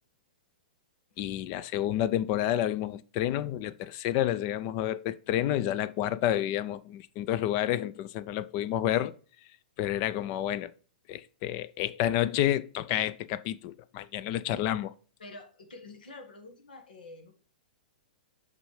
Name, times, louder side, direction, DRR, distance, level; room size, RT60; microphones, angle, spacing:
voice 1, 1.2-9.1 9.8-10.7 11.1-14.9, left 12 dB, 40° left, 0.4 m, -29 dB
voice 2, 15.2-17.3, left 2 dB, 80° left, 1.5 m, -47 dB
6.1 x 5.4 x 3.2 m
hypercardioid pair, 130°, 5 cm